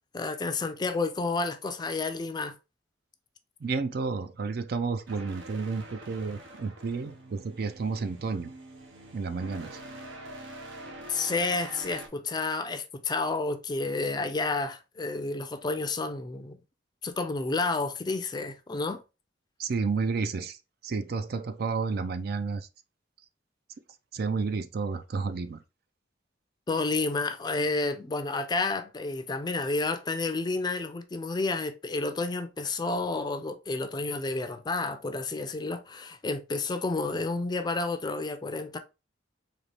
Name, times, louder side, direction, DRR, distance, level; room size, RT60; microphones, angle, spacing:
voice 1, 0.1-2.6 11.1-16.6 17.0-19.0 26.7-38.8, left 3 dB, 20° left, 0.4 m, -30 dB
voice 2, 3.6-8.5 9.1-9.7 19.6-20.6 20.8-22.7 24.1-25.6, right 4 dB, 55° right, 0.4 m, -31 dB
sound 1, 5.1-12.1, right 2 dB, 80° right, 0.9 m, -45 dB
4.1 x 2.9 x 3.3 m
head